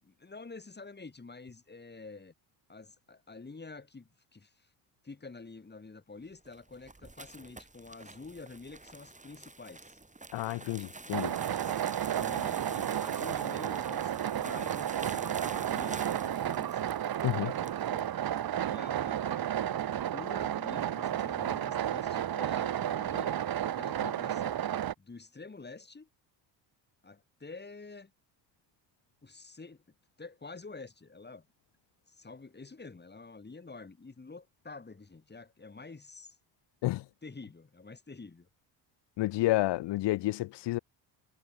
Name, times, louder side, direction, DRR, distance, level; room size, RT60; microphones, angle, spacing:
voice 1, 0.0-2.3 2.7-4.7 5.0-10.0 11.1-16.8 17.4-18.1 18.7-24.6 25.0-26.1 27.0-28.1 29.2-29.8 30.2-31.5 32.1-36.4 37.2-38.5, left 3 dB, 20° left, 4.6 m, -48 dB
sound 1, 6.3-18.1, right 2 dB, 15° right, 6.1 m, -48 dB
voice 2, 10.3-11.3 17.2-17.5 36.8-37.1 39.2-40.8, left 17 dB, 55° left, 0.8 m, -30 dB
sound 2, 11.1-24.9, right 11 dB, 45° right, 1.5 m, -32 dB
cardioid pair, 90°, 49 cm